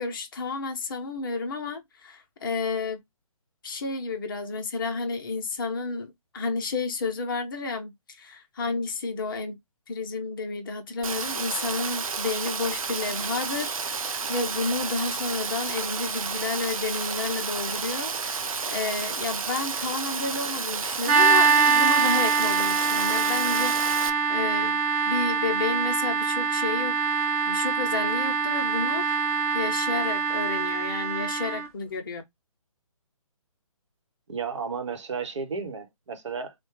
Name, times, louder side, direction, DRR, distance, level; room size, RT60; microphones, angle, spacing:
voice 1, 0.0-3.0 3.6-9.6 9.9-24.8 25.1-27.0 27.5-29.2 29.5-32.2, left 4 dB, 35° left, 0.7 m, -31 dB
Rain, 11.0-24.1, right 5 dB, 75° right, 0.5 m, -31 dB
sound 1, 21.0-31.7, right 6 dB, 20° right, 0.7 m, -24 dB
voice 2, 34.3-36.5, right 5 dB, 55° right, 0.9 m, -33 dB
3.7 x 2.2 x 3.0 m
figure-of-eight pair, 140°, 18 cm